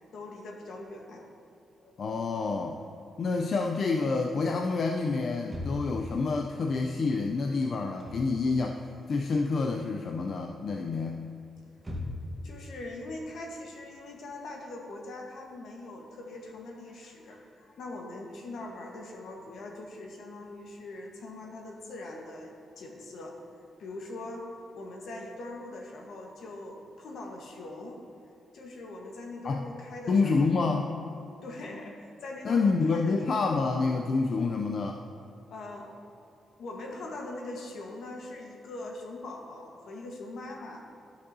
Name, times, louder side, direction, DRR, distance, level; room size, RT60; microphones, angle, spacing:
voice 1, 0.1-1.3 1.8-1.9 12.4-23.4 23.8-28.0 28.5-30.5 31.4-33.6 35.5-35.9 36.6-40.8, left 2 dB, 70° left, 1 dB, 1.2 m, -42 dB
voice 2, 2.0-2.8 3.2-8.8 9.1-11.2 29.4-29.6 30.1-30.9 32.4-35.0, left 4 dB, 45° left, 2 dB, 0.4 m, -28 dB
sound 1, 5.4-6.1 7.8-8.3 8.6-9.6 9.9-10.3 10.9-12.4, left 2 dB, 15° right, 1.2 m, -39 dB
13.0 x 6.1 x 2.7 m, 2.4 s
cardioid pair, 140°, 0 cm